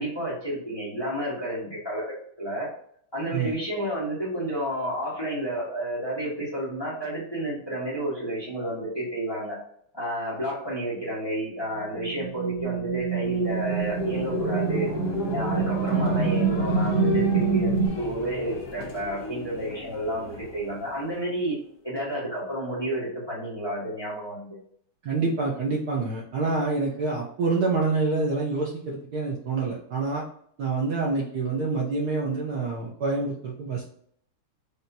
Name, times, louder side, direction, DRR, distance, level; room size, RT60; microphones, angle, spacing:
voice 1, 0.0-2.7 3.1-9.6 9.9-14.9 15.3-21.5 21.8-24.6, right 1 dB, 15° left, -7 dB, 1.4 m, -31 dB
sound 1, 12.0-17.9, right 5 dB, 80° right, 1.7 m, -26 dB
sound 2, 13.0-21.7, left 3 dB, 60° left, 1.4 m, -35 dB
voice 2, 25.0-30.2 30.6-33.8, right 3 dB, 60° right, -3 dB, 1.1 m, -27 dB
5.1 x 2.8 x 2.7 m, 0.65 s
omnidirectional pair, 2.3 m